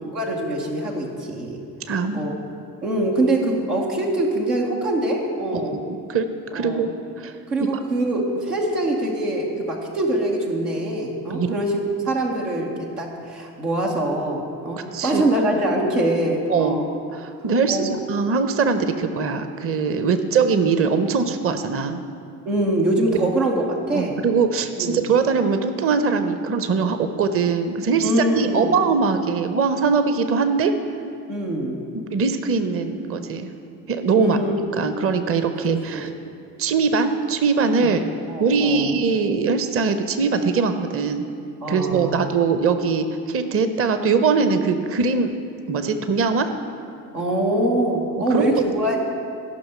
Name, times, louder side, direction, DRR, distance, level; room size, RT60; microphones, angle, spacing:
voice 1, 0.0-2.3 2.8-5.8 6.5-6.9 7.5-11.8 12.0-16.9 17.7-18.0 22.5-24.1 24.8-25.1 28.0-28.7 31.3-31.8 34.2-34.5 35.6-36.1 37.8-38.0 38.3-38.9 41.6-42.4 47.1-49.0, right 1 dB, 85° right, -2 dB, 1.1 m, -24 dB
voice 2, 1.9-2.3 5.7-7.3 7.6-7.7 11.3-11.5 14.9-15.2 16.5-16.8 17.2-22.0 23.9-30.7 31.9-33.5 33.9-34.4 34.8-36.1 36.6-38.0 38.4-41.3 41.7-45.3 45.7-46.5 48.3-48.5, right 5 dB, 30° right, 9 dB, 0.7 m, -21 dB
12.5 x 5.7 x 5.6 m, 2.4 s
figure-of-eight pair, 45°, 45 cm